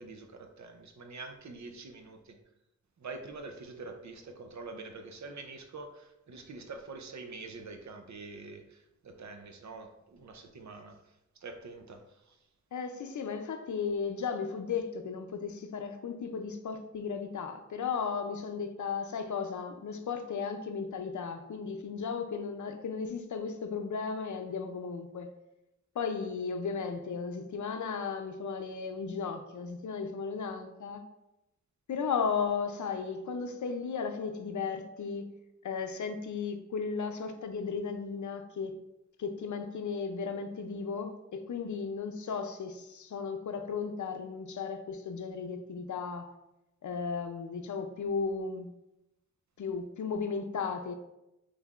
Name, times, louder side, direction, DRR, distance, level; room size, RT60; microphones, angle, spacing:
voice 1, 0.0-2.4 3.0-11.0 11.4-12.4, right 3 dB, 75° right, 6 dB, 0.6 m, -45 dB
voice 2, 12.7-25.3 25.9-31.0 31.9-35.3 35.6-38.8 39.2-46.4 46.8-48.7 49.6-50.9, left 5 dB, 85° left, 7 dB, 0.5 m, -35 dB
5.4 x 3.3 x 2.4 m, 0.90 s
wide cardioid pair, 95°, 29 cm